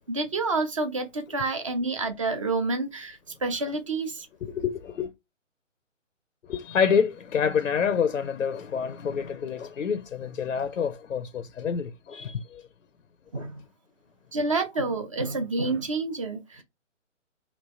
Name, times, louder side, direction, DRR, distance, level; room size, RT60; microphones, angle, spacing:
voice 1, 0.1-4.3 13.3-13.6 14.3-16.6, right 3 dB, 25° right, 0.5 m, -28 dB
voice 2, 4.4-5.1 6.5-12.6 13.4-13.5, left 7 dB, 80° left, 0.6 m, -27 dB
3.3 x 3.0 x 4.1 m
figure-of-eight pair, 145°, 38 cm